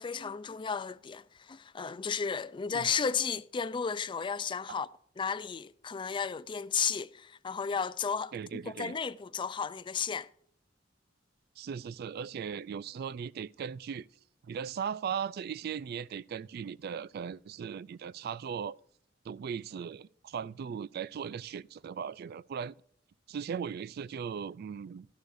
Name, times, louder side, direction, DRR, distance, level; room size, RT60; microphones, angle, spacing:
voice 1, 0.0-4.9 5.2-10.3, left 6 dB, 25° left, 0.4 m, -34 dB
voice 2, 8.3-8.9 11.6-14.1 14.4-18.8 19.3-22.7 23.3-25.1, right 7 dB, 55° right, 0.3 m, -38 dB
13.0 x 11.0 x 2.6 m
head